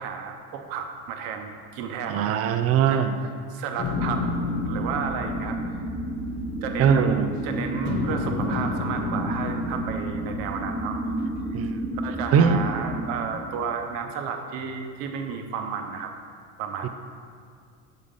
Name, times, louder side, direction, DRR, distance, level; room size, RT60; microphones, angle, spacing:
voice 1, 0.0-4.3 4.6-5.6 6.6-11.0 12.0-16.1 16.6-16.9, right 6 dB, 70° right, 4 dB, 0.8 m, -32 dB
voice 2, 2.1-3.2 6.8-7.3 11.5-11.9 12.3-12.6 16.8-16.9, right 7 dB, 40° right, 9 dB, 0.4 m, -21 dB
sound 1, 3.8-7.4 7.8-11.2, left 4 dB, 50° left, 0.8 m, -32 dB
sound 2, 3.9-13.8, right 1 dB, 15° right, 0.7 m, -31 dB
6.3 x 3.6 x 5.5 m, 2.1 s
supercardioid pair, 105°, 36 cm